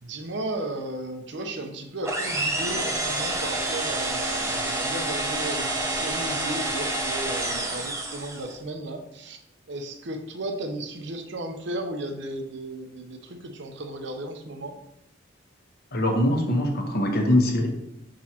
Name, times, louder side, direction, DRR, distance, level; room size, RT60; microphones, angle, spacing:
voice 1, 0.0-9.4 9.7-14.8, right 1 dB, 65° right, 5 dB, 0.8 m, -35 dB
sound 1, 2.0-8.6, right 2 dB, 15° right, 0.8 m, -28 dB
voice 2, 15.9-17.7, left 1 dB, 55° left, 2 dB, 1.1 m, -22 dB
6.3 x 6.0 x 2.9 m, 0.85 s
head